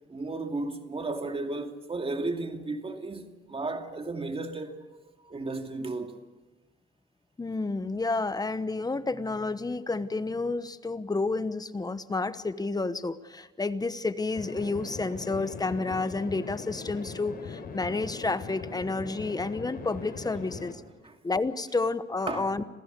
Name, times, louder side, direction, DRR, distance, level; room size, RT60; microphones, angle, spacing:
voice 1, 0.1-4.8 5.2-6.2 21.0-21.1 22.3-22.6, right 3 dB, 30° right, 2.5 m, -34 dB
voice 2, 7.4-20.8 21.2-22.6, left 3 dB, 20° left, 1.1 m, -30 dB
sound 1, 14.4-20.7, left 4 dB, 50° left, 4.1 m, -40 dB
26.5 x 16.0 x 6.9 m
cardioid pair, 90°, 20 cm